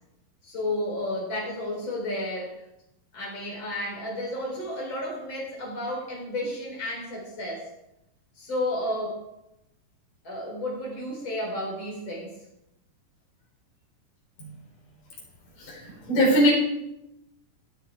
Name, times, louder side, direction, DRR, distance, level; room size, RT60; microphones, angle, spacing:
voice 1, 0.4-2.6 3.1-7.7 8.4-9.2 10.2-12.4, left 1 dB, 30° left, -2 dB, 4.5 m, -32 dB
voice 2, 15.6-16.5, equal, 55° left, -4 dB, 6.0 m, -22 dB
16.0 x 6.6 x 4.7 m, 0.86 s
omnidirectional pair, 4.4 m